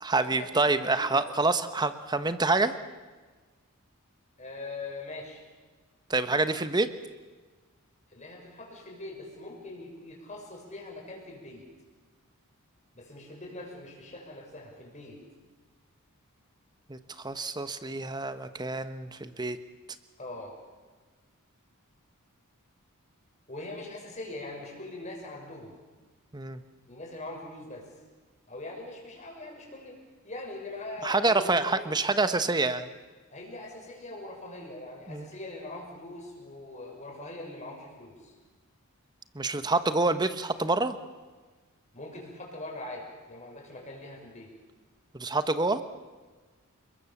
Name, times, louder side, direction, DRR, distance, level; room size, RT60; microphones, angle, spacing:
voice 1, 0.0-2.7 6.1-6.9 16.9-19.6 26.3-26.6 31.0-32.9 35.1-35.3 39.3-41.0 45.1-45.8, right 3 dB, 20° right, 11 dB, 1.1 m, -27 dB
voice 2, 0.8-1.4 4.4-5.4 8.1-11.6 12.9-15.2 20.2-20.5 23.5-25.7 26.9-27.9 28.5-30.0 30.2-32.0 33.3-38.3 41.9-44.5, left 2 dB, 30° left, 1 dB, 6.5 m, -42 dB
29.5 x 21.0 x 7.3 m, 1.4 s
head